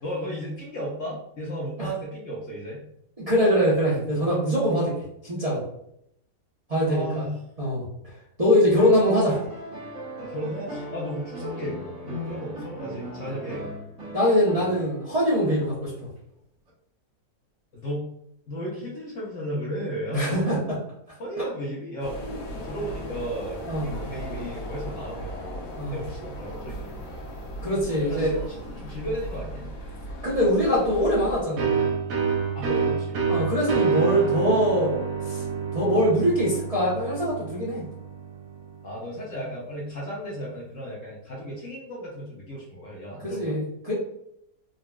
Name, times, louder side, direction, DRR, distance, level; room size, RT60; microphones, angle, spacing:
voice 1, 0.0-2.8 6.9-7.4 8.6-8.8 10.2-13.6 15.6-15.7 17.7-18.0 18.5-20.5 21.2-22.2 22.5-27.0 28.0-29.7 32.5-33.2 38.8-43.6, equal, 60° left, -4 dB, 1.0 m, -34 dB
voice 2, 3.2-4.9 5.2-5.6 6.7-7.2 7.6-7.8 8.4-9.4 14.1-15.9 20.1-20.8 22.2-22.3 23.7-23.9 25.8-26.0 27.6-28.3 30.2-31.8 33.3-35.4 35.7-37.8 43.2-43.9, equal, 30° right, -8 dB, 0.7 m, -23 dB
sound 1, 8.8-15.2 16.7-16.8, equal, 50° right, 1.3 m, -38 dB
sound 2, 22.0-31.4, equal, 75° left, 1.3 m, -37 dB
sound 3, 31.6-39.0, right 6 dB, 70° right, 0.9 m, -28 dB
3.8 x 2.3 x 2.2 m, 0.75 s
omnidirectional pair, 1.8 m